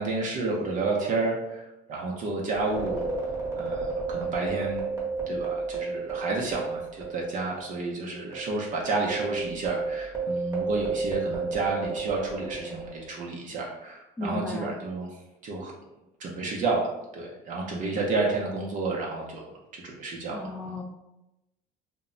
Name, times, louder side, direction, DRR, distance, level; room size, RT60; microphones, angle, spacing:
voice 1, 0.0-3.0 3.6-4.8 5.3-15.1 15.4-15.7 16.2-19.5 19.7-20.7, right 3 dB, 50° right, -2 dB, 0.5 m, -30 dB
sound 1, 2.5-7.3 7.6-7.7 8.3-13.1, right 4 dB, 15° right, 0.9 m, -32 dB
voice 2, 14.2-14.7 20.3-20.8, left 2 dB, 10° left, 2 dB, 0.4 m, -34 dB
2.2 x 2.0 x 3.7 m, 0.93 s
cardioid pair, 115°, 17 cm